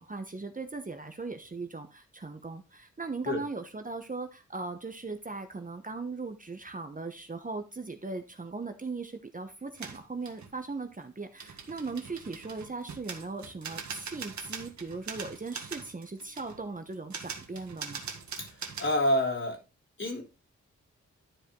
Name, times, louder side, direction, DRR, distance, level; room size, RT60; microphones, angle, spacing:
voice 1, 0.0-18.0, right 3 dB, 25° right, 7 dB, 1.1 m, -39 dB
sound 1, 9.8-10.6 11.4-19.0, right 5 dB, 75° right, 1.6 m, -42 dB
voice 2, 18.4-19.6 20.0-20.2, left 1 dB, 40° left, 1 dB, 3.6 m, -28 dB
12.5 x 4.9 x 3.8 m, 0.29 s
cardioid pair, 75°, 29 cm